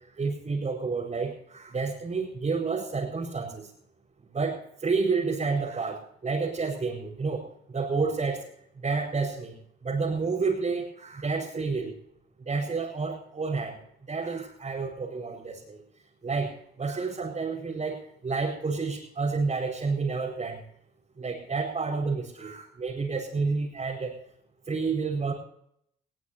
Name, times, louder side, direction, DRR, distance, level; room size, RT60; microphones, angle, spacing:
voice 1, 0.2-3.7 4.3-7.4 7.7-8.4 8.8-9.6 9.8-12.0 12.5-13.8 14.1-15.8 16.2-16.5 16.8-20.6 21.2-24.2 24.7-25.3, right 4 dB, 35° right, -5 dB, 4.7 m, -30 dB
21.0 x 17.5 x 2.9 m, 0.73 s
cardioid pair, 90°, 20 cm